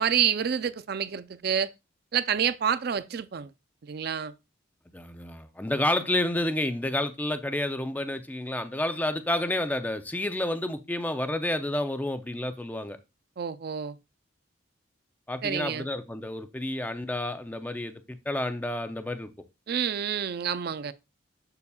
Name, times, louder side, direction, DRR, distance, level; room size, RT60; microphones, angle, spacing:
voice 1, 0.0-1.7 2.1-3.5 3.8-4.3 13.4-14.0 15.4-15.9 19.7-20.9, right 8 dB, 50° right, 0.4 m, -28 dB
voice 2, 4.9-13.0 15.3-19.3, left 1 dB, 10° left, 0.5 m, -30 dB
6.9 x 6.8 x 2.3 m
head